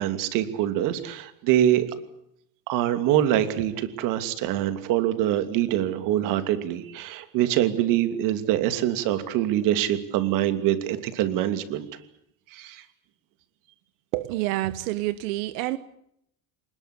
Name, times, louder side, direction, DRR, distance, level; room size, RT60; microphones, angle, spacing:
voice 1, 0.0-1.9 2.7-11.9 12.5-12.8, right 12 dB, 50° right, 2.8 m, -24 dB
voice 2, 14.1-15.8, right 17 dB, 85° right, 1.4 m, -28 dB
27.5 x 20.0 x 8.4 m
cardioid pair, 180°, 41 cm